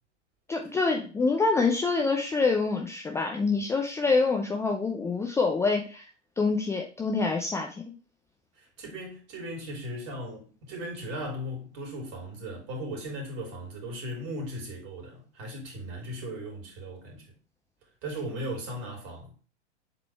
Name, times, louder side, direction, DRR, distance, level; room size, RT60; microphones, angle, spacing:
voice 1, 0.5-6.1 6.4-7.8, left 4 dB, 10° left, 0.6 m, -26 dB
voice 2, 8.6-17.3 18.0-19.3, equal, 40° right, 3.3 m, -37 dB
7.7 x 4.1 x 3.2 m
figure-of-eight pair, 100°, 35 cm